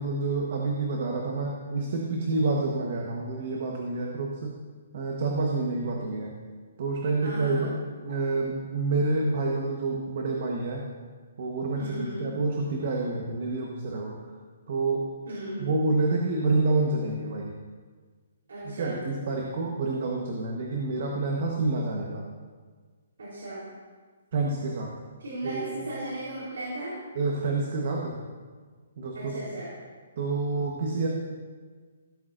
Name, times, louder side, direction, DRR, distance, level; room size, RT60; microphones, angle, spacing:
voice 1, 0.0-4.6 4.9-6.3 6.8-7.7 8.0-10.8 11.4-14.2 14.7-15.1 15.6-17.5 18.6-22.3 24.3-24.9 25.4-25.9 27.1-28.2 29.0-29.4 30.2-31.1, right 3 dB, 40° right, 0 dB, 1.1 m, -28 dB
voice 2, 7.2-7.7 11.7-12.3 15.3-15.8 18.5-19.0 23.2-23.7 25.2-26.9 29.1-29.7, right 1 dB, 85° right, -7 dB, 3.7 m, -36 dB
15.5 x 13.0 x 2.6 m, 1.5 s
hypercardioid pair, 180°, 0 cm